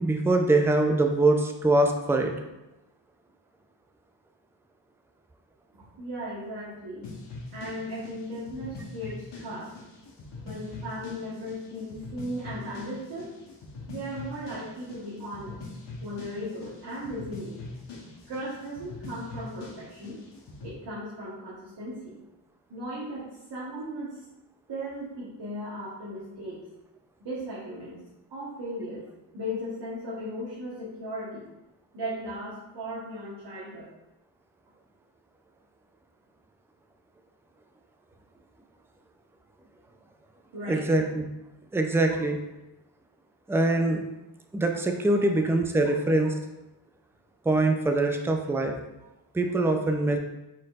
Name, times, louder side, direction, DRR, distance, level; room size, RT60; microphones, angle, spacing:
voice 1, 0.0-2.3 40.7-41.2 41.7-42.4 43.5-44.0 44.5-46.3 47.5-48.7 49.3-50.2, right 2 dB, 5° right, 4 dB, 0.5 m, -23 dB
voice 2, 5.7-7.1 7.5-9.7 10.4-13.3 13.9-15.7 16.0-17.6 18.3-20.2 20.6-22.2 22.7-24.2 24.7-26.6 27.2-28.0 28.3-29.0 29.3-31.4 31.9-33.9 40.5-40.8 42.1-42.2 45.2-45.3, equal, 65° right, -8 dB, 1.3 m, -37 dB
sound 1, 7.0-20.7, left 3 dB, 65° left, 1.1 m, -43 dB
4.3 x 4.0 x 2.5 m, 0.96 s
supercardioid pair, 45°, 46 cm